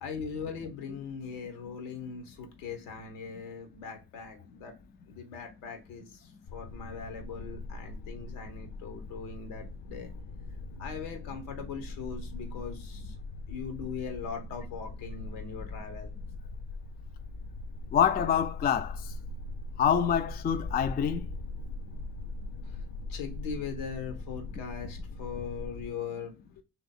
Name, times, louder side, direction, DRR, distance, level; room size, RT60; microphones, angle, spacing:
voice 1, 0.0-4.8 5.1-10.1 10.8-13.1 13.5-16.1 23.1-26.6, left 6 dB, 80° left, 1.0 m, -40 dB
sound 1, 6.5-25.9, left 2 dB, 60° left, 0.7 m, -41 dB
voice 2, 17.9-19.1 19.8-21.3, left 8 dB, 25° left, 0.3 m, -26 dB
3.1 x 2.9 x 4.0 m
hypercardioid pair, 45°, 46 cm